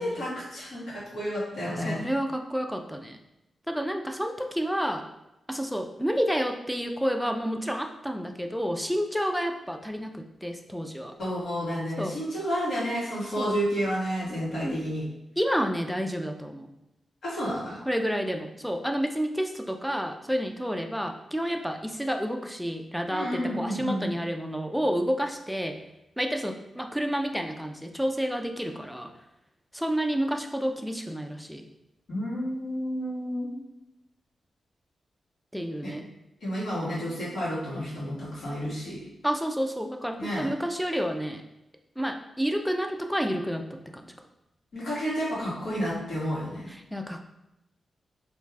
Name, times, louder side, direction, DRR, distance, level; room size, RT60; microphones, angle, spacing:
voice 1, 0.0-2.0 11.2-15.0 17.2-17.8 23.1-24.1 32.1-33.5 35.8-35.9 36.4-39.0 40.2-40.5 44.7-46.7, equal, 80° left, -8 dB, 1.3 m, -30 dB
voice 2, 1.8-3.2 3.7-5.0 5.5-11.1 12.0-12.2 13.4-13.6 14.6-14.8 15.4-16.7 17.9-25.8 26.2-29.1 29.7-31.6 35.5-36.1 39.2-41.4 42.0-44.1 46.7-47.3, equal, ahead, 4 dB, 0.3 m, -30 dB
2.5 x 2.3 x 3.3 m, 0.91 s
cardioid pair, 80°, 0 cm